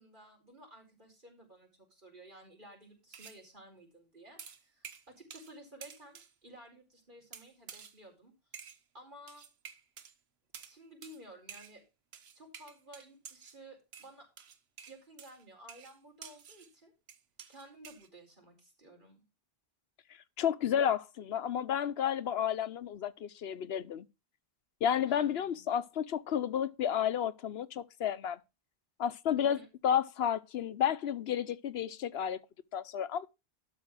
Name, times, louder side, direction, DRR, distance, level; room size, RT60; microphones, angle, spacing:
voice 1, 0.0-8.3 8.9-9.5 10.6-11.8 12.3-14.3 14.9-16.9 17.5-19.2 25.0-25.6 29.4-29.7, right 1 dB, 50° right, 4.7 m, -54 dB
sound 1, 3.1-3.4 4.4-5.6 5.8-6.3 7.3-8.0 8.5-8.8 9.3-10.1 10.5-10.8 11.0-11.2 11.5-11.8 12.1-13.6 13.9-16.7 17.1-18.1, right 7 dB, 80° right, 1.2 m, -50 dB
voice 2, 20.4-24.1 24.8-28.4 29.0-29.6 29.8-32.4 32.7-33.3, left 9 dB, 75° left, 0.9 m, -31 dB
12.0 x 4.8 x 6.1 m
omnidirectional pair, 1.0 m